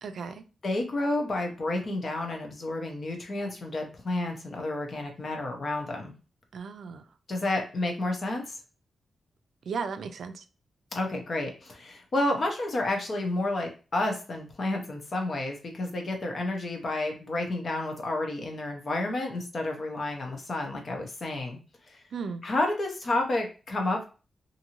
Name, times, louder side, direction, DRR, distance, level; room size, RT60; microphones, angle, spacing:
voice 1, 0.0-0.4 6.5-7.0 9.7-10.4 22.1-22.4, right 5 dB, 70° right, 0.3 m, -35 dB
voice 2, 0.6-6.1 7.3-8.4 10.9-21.6 21.9-22.0 22.4-24.0, left 2 dB, 45° left, 0.7 m, -30 dB
2.7 x 2.6 x 2.8 m
wide cardioid pair, 130°, 0 cm